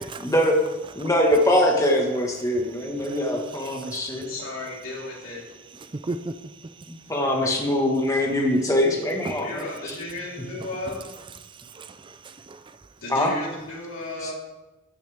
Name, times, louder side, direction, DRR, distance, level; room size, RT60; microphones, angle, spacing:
voice 1, 0.2-0.6 0.9-4.3 7.1-9.6 13.1-13.3 14.2-14.3, left 1 dB, 15° left, 1.5 m, -22 dB
voice 2, 2.8-3.2 3.6-4.3 5.8-6.4 9.3-9.4 11.6-12.8, right 2 dB, 25° right, 0.4 m, -37 dB
voice 3, 4.3-5.7 9.4-11.0 13.0-14.3, left 2 dB, 80° left, 3.6 m, -34 dB
13.0 x 9.6 x 3.5 m
head